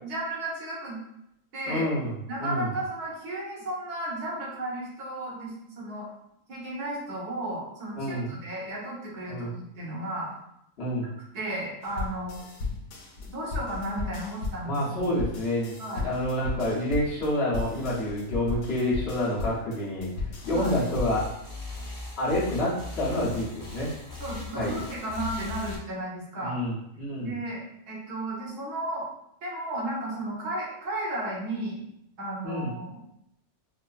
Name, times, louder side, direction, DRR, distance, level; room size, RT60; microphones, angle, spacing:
voice 1, 0.0-1.0 1.5-1.8 2.3-6.1 6.5-10.3 11.3-12.4 13.3-15.0 15.8-16.0 20.5-20.7 24.2-26.6 27.2-27.6 27.9-29.1 29.4-31.8 32.2-33.0, right 1 dB, 80° right, -5 dB, 1.6 m, -34 dB
voice 2, 1.7-2.7 8.0-8.3 9.3-9.5 10.8-11.1 14.6-21.3 22.2-23.9 24.5-24.7 26.4-27.4 32.4-32.7, left 1 dB, 50° left, -7 dB, 1.0 m, -28 dB
sound 1, 11.8-21.3, left 4 dB, 70° left, 1.1 m, -35 dB
sound 2, 20.4-25.8, left 3 dB, 15° left, 0.7 m, -39 dB
4.8 x 2.0 x 2.3 m, 0.79 s
omnidirectional pair, 1.6 m